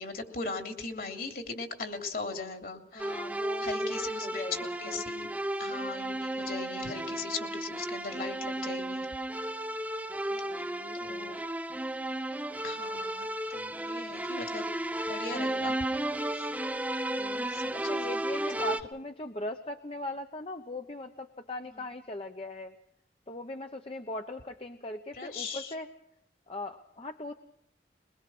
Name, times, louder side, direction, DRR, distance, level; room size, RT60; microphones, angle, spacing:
voice 1, 0.0-3.3 3.6-5.3 5.6-9.1 10.5-10.7 11.0-11.4 12.6-14.7 15.1-15.8 16.3-16.5 17.5-18.2 18.6-18.7 21.7-21.8 25.1-25.7, left 4 dB, 55° left, 4 dB, 2.9 m, -39 dB
voice 2, 2.9-5.0 10.3-11.4 17.1-22.7 23.3-25.9 26.5-27.3, left 1 dB, 30° left, 5 dB, 1.0 m, -40 dB
sound 1, 3.0-18.8, right 1 dB, 10° right, 0.8 m, -34 dB
22.5 x 22.0 x 6.1 m, 0.72 s
head